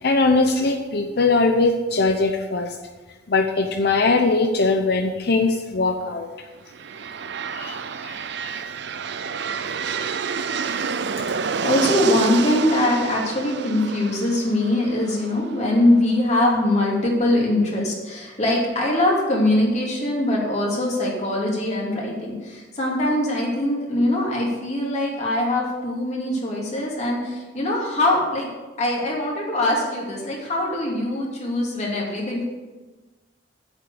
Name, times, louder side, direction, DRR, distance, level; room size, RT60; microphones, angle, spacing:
voice 1, 0.0-2.8 3.3-6.3 7.5-7.7 8.0-8.2 8.4-8.6 10.6-10.9, left 3 dB, 60° left, 4 dB, 0.8 m, -21 dB
sound 1, 6.7-16.5, right 6 dB, 70° right, 0.6 m, -29 dB
voice 2, 11.3-28.5 28.8-32.5, left 1 dB, 40° left, -3 dB, 2.8 m, -22 dB
8.2 x 7.8 x 6.9 m, 1.3 s
head